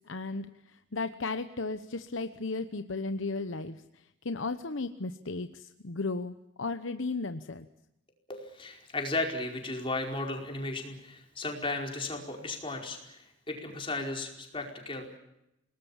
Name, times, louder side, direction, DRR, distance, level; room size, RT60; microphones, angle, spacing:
voice 1, 0.0-7.7, left 3 dB, 75° left, 9 dB, 1.0 m, -35 dB
voice 2, 8.3-15.1, left 2 dB, 25° left, 2 dB, 4.9 m, -35 dB
29.0 x 19.5 x 7.3 m, 0.86 s
head